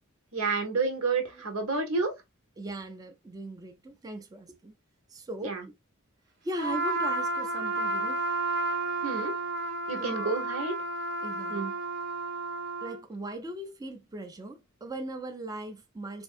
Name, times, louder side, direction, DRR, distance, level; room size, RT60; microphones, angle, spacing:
voice 1, 0.3-2.1 5.4-5.7 9.0-9.3 9.9-10.7 11.5-11.7, right 4 dB, 85° right, 1.1 m, -29 dB
voice 2, 2.6-4.7 5.1-5.6 6.4-8.2 10.0-10.4 11.2-11.7 12.8-16.2, right 1 dB, 15° right, 0.4 m, -39 dB
Trumpet, 6.6-13.0, right 2 dB, 55° right, 0.9 m, -31 dB
4.4 x 2.6 x 2.4 m
head